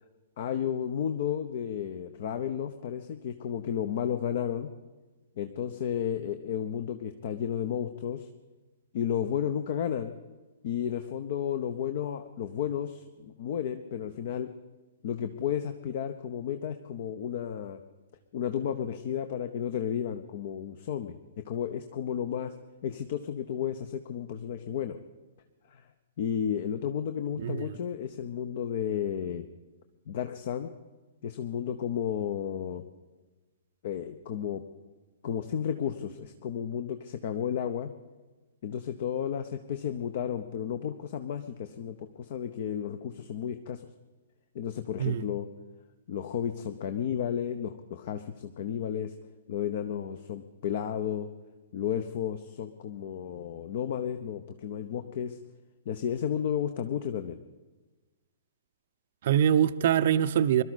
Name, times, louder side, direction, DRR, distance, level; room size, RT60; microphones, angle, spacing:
voice 1, 0.4-4.7 5.4-8.3 8.9-10.1 10.6-14.5 15.0-17.8 18.3-21.2 21.5-22.5 22.8-25.0 25.7-25.8 26.2-29.5 30.1-30.7 31.2-32.8 33.8-34.6 35.2-37.9 38.6-43.8 44.5-45.5 46.1-49.1 49.5-51.3 51.7-55.4 55.9-57.4, left 9 dB, 50° left, 0.8 m, -32 dB
voice 2, 27.4-27.7 45.0-45.2 59.2-60.6, right 9 dB, 50° right, 0.6 m, -24 dB
22.5 x 12.5 x 4.1 m
figure-of-eight pair, 115°, 0 cm